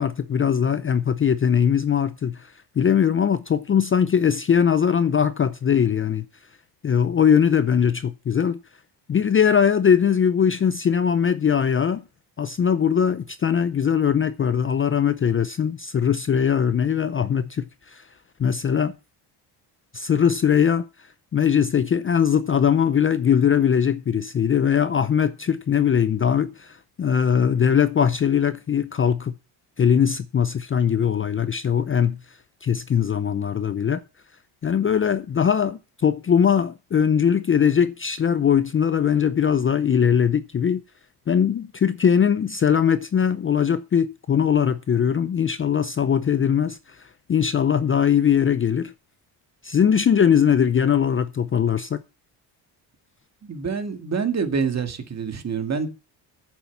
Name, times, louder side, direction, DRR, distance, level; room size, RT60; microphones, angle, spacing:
voice 1, 0.0-6.2 6.8-8.6 9.1-12.0 12.4-18.0 18.4-18.9 19.9-20.8 21.3-29.3 29.8-32.2 32.6-34.0 34.6-40.8 41.3-48.9 49.6-52.0, left 8 dB, 30° left, 0.5 m, -21 dB
voice 2, 53.4-55.9, right 5 dB, 35° right, 2.0 m, -26 dB
9.5 x 7.3 x 7.0 m
cardioid pair, 115°, 46 cm